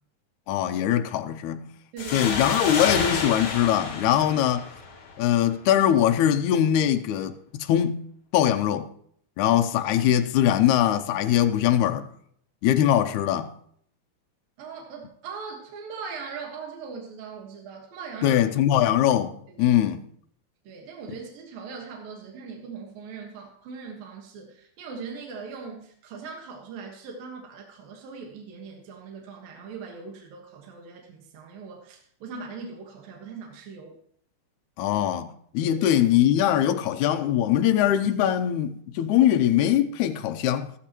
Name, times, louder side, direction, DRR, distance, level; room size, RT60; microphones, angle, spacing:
voice 1, 0.5-1.7 2.1-4.7 5.2-8.0 8.3-8.9 9.4-12.1 12.6-13.5 18.2-19.3 19.6-20.0 34.8-40.7, left 11 dB, 90° left, 1.7 m, -22 dB
voice 2, 1.9-2.3 14.6-18.4 19.5-19.8 20.6-34.0 35.6-35.8, right 5 dB, 75° right, 3.3 m, -40 dB
sound 1, 2.0-5.4, left 4 dB, 70° left, 4.2 m, -30 dB
14.0 x 13.5 x 3.0 m
omnidirectional pair, 4.2 m